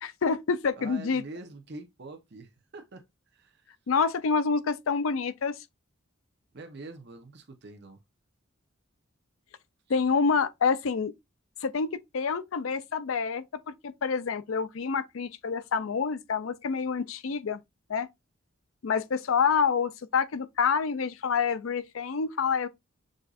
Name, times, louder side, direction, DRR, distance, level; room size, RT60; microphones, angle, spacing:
voice 1, 0.0-1.2 3.9-5.6 9.9-11.1 11.6-17.6 17.9-18.1 18.8-22.7, left 5 dB, 90° left, 0.5 m, -27 dB
voice 2, 0.8-3.1 3.3-3.7 6.5-8.0, right 3 dB, 55° right, 0.8 m, -45 dB
6.4 x 2.6 x 2.4 m
head